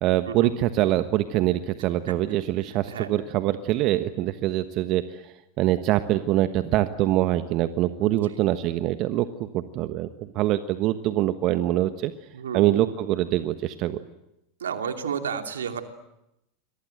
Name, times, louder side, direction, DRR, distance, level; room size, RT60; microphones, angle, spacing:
voice 1, 0.0-12.1 12.5-14.0, right 14 dB, 50° right, 11 dB, 1.2 m, -24 dB
voice 2, 8.0-8.4 12.3-12.9 14.6-15.8, right 7 dB, 80° right, 6 dB, 2.7 m, -32 dB
29.5 x 23.0 x 7.8 m, 0.87 s
hypercardioid pair, 90°, 0 cm